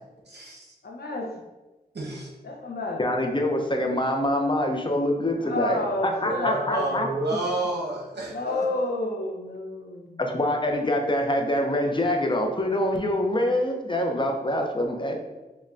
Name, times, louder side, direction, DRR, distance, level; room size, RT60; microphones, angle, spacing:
voice 1, 0.3-0.7 1.9-2.3 6.2-8.6, right 2 dB, 75° right, -3 dB, 0.9 m, -30 dB
voice 2, 0.8-1.3 2.4-3.0 5.4-7.0 8.2-10.2, left 2 dB, 70° left, 1 dB, 0.6 m, -30 dB
voice 3, 3.0-7.1 10.2-15.2, left 1 dB, 30° left, 2 dB, 0.5 m, -25 dB
5.3 x 2.1 x 2.5 m, 1.1 s
wide cardioid pair, 85°, 17 cm